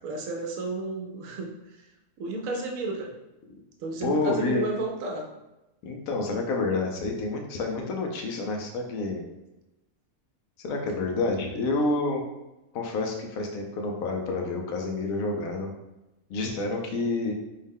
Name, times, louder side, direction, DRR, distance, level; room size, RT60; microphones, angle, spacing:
voice 1, 0.0-1.8 2.2-3.1 3.8-5.3, right 2 dB, 80° right, 2 dB, 1.0 m, -32 dB
voice 2, 4.0-4.7 5.8-9.2 10.6-12.2 12.7-15.7 16.3-17.3, left 3 dB, 80° left, 1 dB, 1.1 m, -28 dB
3.8 x 2.1 x 3.5 m, 0.97 s
omnidirectional pair, 1.4 m